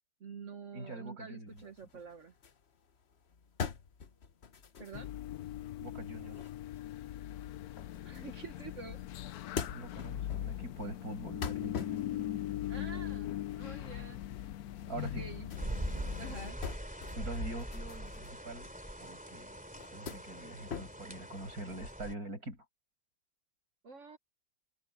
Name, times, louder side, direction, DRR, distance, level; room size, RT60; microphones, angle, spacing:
voice 1, 0.2-2.3 4.8-5.1 8.0-9.0 9.3-9.4 12.7-14.2 15.0-15.5 16.2-16.6 23.8-24.2, right 4 dB, 55° right, 1.6 m, -47 dB
voice 2, 0.7-1.7 5.8-6.5 9.7-12.0 14.9-15.3 17.2-18.7 19.0-19.6 19.9-22.6, right 1 dB, 70° right, 7.0 m, -44 dB
sound 1, 1.5-8.8 9.2-15.7 16.0-19.1 19.5-21.3, left 6 dB, 45° left, 1.3 m, -45 dB
sound 2, 4.9-16.5, left 12 dB, 75° left, 1.1 m, -40 dB
sound 3, 15.6-22.1, equal, 5° right, 2.8 m, -42 dB
omnidirectional pair, 1.6 m